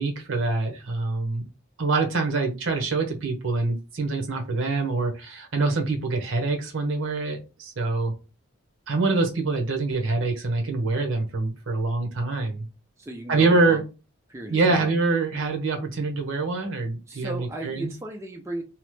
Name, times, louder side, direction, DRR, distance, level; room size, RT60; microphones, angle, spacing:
voice 1, 0.0-1.4 1.8-8.1 8.9-12.7 13.3-13.8 14.5-17.9, right 3 dB, 75° right, 3 dB, 0.8 m, -25 dB
voice 2, 13.0-13.8 14.3-15.0 17.1-18.6, right 2 dB, 15° right, 2 dB, 0.3 m, -36 dB
2.9 x 2.1 x 3.1 m, 0.30 s
head